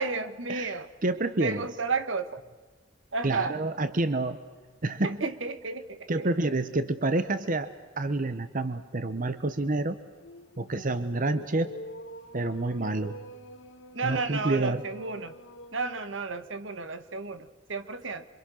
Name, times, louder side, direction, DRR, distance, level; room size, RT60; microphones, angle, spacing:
voice 1, 0.0-0.9 1.4-2.4 3.1-3.6 5.0-6.3 13.9-15.3 15.7-18.3, right 4 dB, 70° right, 11 dB, 1.4 m, -32 dB
voice 2, 1.0-1.7 3.2-4.4 4.8-5.3 6.1-10.0 10.6-11.7 12.3-13.1 14.0-14.8, right 2 dB, 40° right, 11 dB, 0.9 m, -28 dB
sound 1, 4.4-4.8 5.2-5.3 5.7-5.8 7.9-15.8, equal, 70° left, 1.6 m, -47 dB
27.5 x 24.5 x 6.4 m, 1.4 s
head